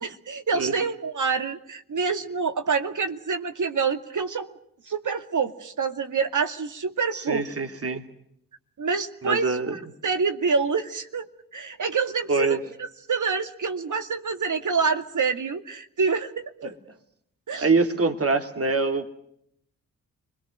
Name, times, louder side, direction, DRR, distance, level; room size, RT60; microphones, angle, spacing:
voice 1, 0.0-4.6 4.9-7.4 8.8-16.5 17.5-17.7, right 5 dB, 55° right, 8 dB, 2.2 m, -27 dB
voice 2, 7.1-8.0 9.2-9.8 12.3-12.6 16.6-16.7 17.6-19.1, right 3 dB, 40° right, 7 dB, 2.8 m, -24 dB
30.0 x 22.0 x 6.4 m, 0.70 s
supercardioid pair, 40°, 36 cm